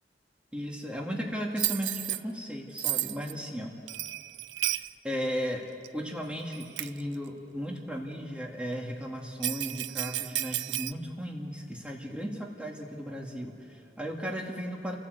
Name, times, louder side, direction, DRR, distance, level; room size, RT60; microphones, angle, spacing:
voice 1, 0.5-3.7 4.6-5.7 5.9-15.0, equal, 5° right, -1 dB, 2.6 m, -36 dB
Bell, 1.6-2.2 2.8-3.3 3.9-4.9 5.8-5.9 6.5-7.0 9.4-10.9, right 16 dB, 85° right, 0.4 m, -32 dB
28.5 x 14.0 x 8.3 m, 2.5 s
head